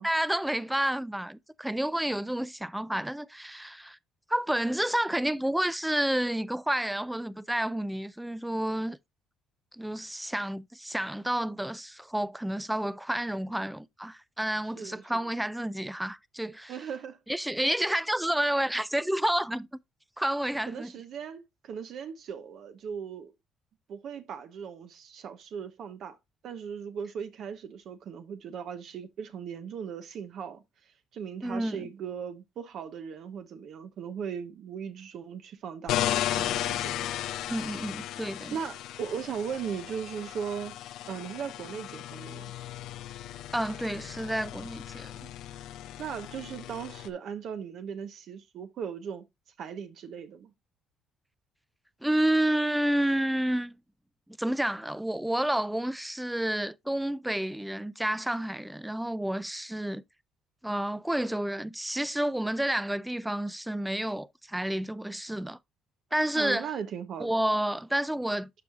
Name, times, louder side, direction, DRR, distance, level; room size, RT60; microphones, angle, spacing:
voice 1, 0.0-4.0 4.3-9.0 9.8-16.7 17.3-19.7 20.2-20.9 31.4-31.9 37.5-38.6 43.5-45.3 52.0-53.8 54.4-60.0 60.6-65.6 66.1-66.7 67.2-68.5, right 1 dB, 5° right, 0.4 m, -30 dB
voice 2, 14.8-15.3 16.7-17.2 20.7-23.3 23.9-26.2 26.4-37.1 38.5-40.7 41.1-42.5 46.0-49.2 49.6-50.5 66.3-67.4, right 7 dB, 60° right, 0.9 m, -38 dB
sound 1, 35.9-47.1, left 12 dB, 75° left, 0.6 m, -35 dB
12.0 x 4.7 x 2.3 m
cardioid pair, 110°, 0 cm